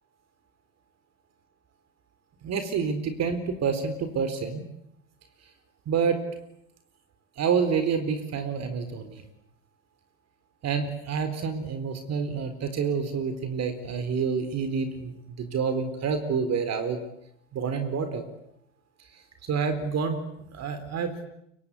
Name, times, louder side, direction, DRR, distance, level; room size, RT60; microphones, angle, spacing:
voice 1, 2.4-4.6 5.9-6.2 7.4-9.2 10.6-17.0 17.5-18.2 19.5-21.3, right 6 dB, 45° right, 9 dB, 4.3 m, -28 dB
29.0 x 24.0 x 8.6 m, 0.77 s
hypercardioid pair, 75°, 36 cm